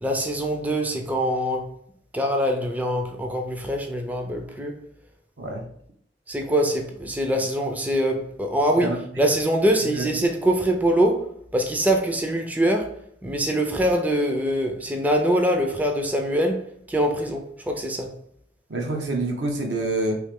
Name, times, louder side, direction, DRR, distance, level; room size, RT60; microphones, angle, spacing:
voice 1, 0.0-1.7 2.1-4.8 6.3-12.9 13.2-18.1, right 1 dB, 10° right, 0.4 m, -24 dB
voice 2, 18.7-20.2, right 2 dB, 85° right, 0.8 m, -26 dB
3.2 x 2.8 x 3.5 m
head